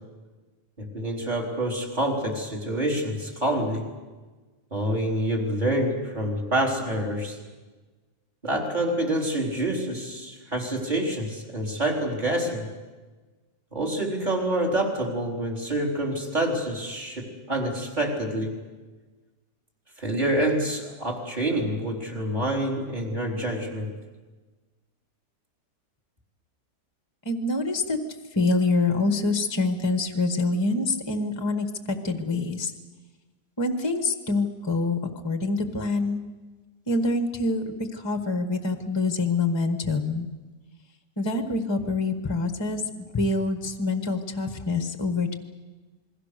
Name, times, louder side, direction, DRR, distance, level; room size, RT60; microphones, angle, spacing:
voice 1, 0.8-3.8 4.7-7.4 8.4-12.7 13.7-18.5 20.0-23.9, right 1 dB, 25° right, 1 dB, 4.1 m, -27 dB
voice 2, 27.2-28.0 28.3-32.7 33.6-35.0 35.2-36.2 36.9-40.3 41.2-45.4, left 3 dB, 15° left, 7 dB, 1.4 m, -26 dB
27.5 x 22.0 x 6.7 m, 1.3 s
omnidirectional pair, 1.8 m